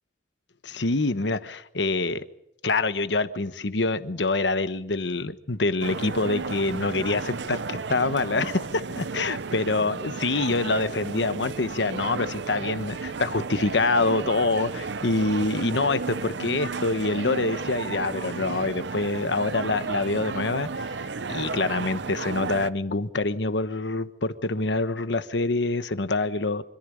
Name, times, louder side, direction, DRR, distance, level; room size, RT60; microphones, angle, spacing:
voice 1, 0.6-2.2 2.6-20.7 21.3-26.6, left 3 dB, 75° left, 12 dB, 1.2 m, -26 dB
sound 1, 5.8-22.7, right 4 dB, 75° right, 0.7 m, -33 dB
25.5 x 14.5 x 8.7 m, 0.80 s
head